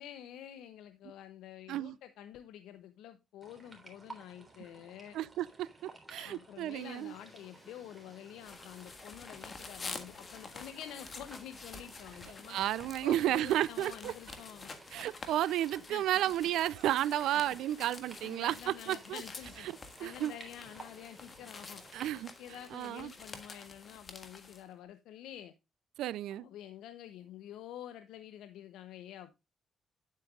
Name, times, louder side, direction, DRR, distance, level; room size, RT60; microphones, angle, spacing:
voice 1, 0.0-5.2 6.2-12.6 13.0-14.7 15.9-16.0 18.2-19.7 20.0-22.1 22.4-25.5 26.3-29.4, left 11 dB, 90° left, 0.6 m, -48 dB
sound 1, 3.4-22.1, right 2 dB, 15° right, 3.6 m, -56 dB
voice 2, 5.1-5.7 6.1-7.1 12.5-14.1 14.9-19.2 19.7-20.3 21.9-22.3 22.7-23.1 26.0-26.4, right 13 dB, 85° right, 0.4 m, -32 dB
sound 2, 6.7-23.3, left 1 dB, 15° left, 3.2 m, -60 dB
sound 3, 8.4-24.6, left 4 dB, 40° left, 1.6 m, -49 dB
9.3 x 8.3 x 2.3 m
cardioid pair, 90°, 0 cm